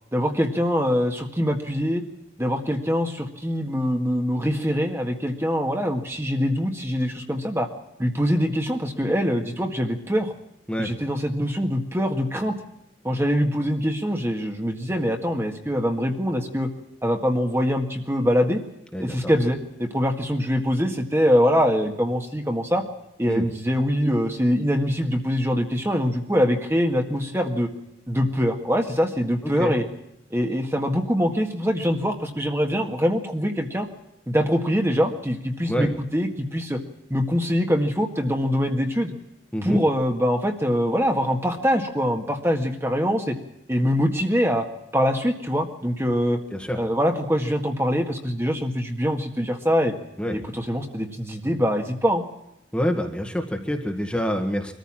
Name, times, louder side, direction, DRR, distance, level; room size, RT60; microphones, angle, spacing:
voice 1, 0.1-2.0 2.4-7.7 8.0-10.3 10.8-12.6 13.0-16.7 17.0-18.6 19.0-22.8 23.2-27.7 28.1-29.8 30.3-33.9 34.3-36.8 37.1-39.1 39.6-43.4 43.7-44.7 44.9-46.4 46.8-49.9 50.3-52.3, equal, 15° right, 3 dB, 1.8 m, -23 dB
voice 2, 18.9-19.3 23.3-23.4 29.6-29.7 35.7-35.9 39.5-39.8 46.5-46.8 50.2-50.4 52.7-54.7, equal, 5° left, 3 dB, 1.8 m, -26 dB
24.0 x 14.5 x 7.5 m, 0.84 s
head